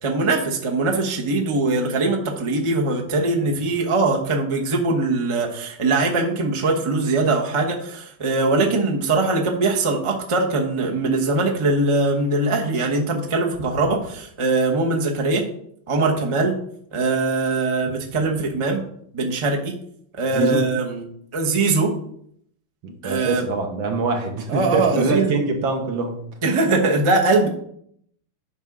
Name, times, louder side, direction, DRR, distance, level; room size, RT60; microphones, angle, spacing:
voice 1, 0.0-15.4 15.9-16.6 16.9-18.8 19.1-19.8 20.2-21.0 21.3-22.0 23.0-23.4 24.5-25.4 26.4-27.5, right 3 dB, 20° right, 0 dB, 0.8 m, -21 dB
voice 2, 20.3-20.7 22.8-26.3, right 3 dB, 80° right, 4 dB, 2.0 m, -24 dB
8.9 x 5.8 x 3.7 m, 0.67 s
omnidirectional pair, 2.2 m